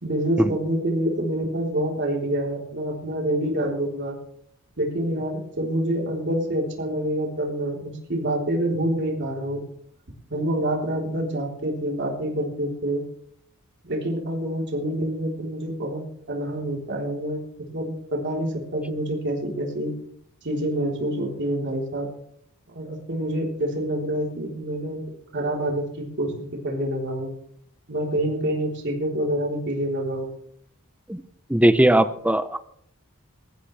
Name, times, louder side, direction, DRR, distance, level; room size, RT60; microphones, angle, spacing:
voice 1, 0.0-4.2 4.8-9.6 10.3-13.0 13.8-17.4 17.7-19.9 20.4-22.1 22.7-25.0 25.3-27.3 27.9-30.3, right 1 dB, 55° right, -1 dB, 3.9 m, -27 dB
voice 2, 31.5-32.7, right 1 dB, 5° right, 12 dB, 0.7 m, -19 dB
21.0 x 14.5 x 3.4 m, 0.68 s
head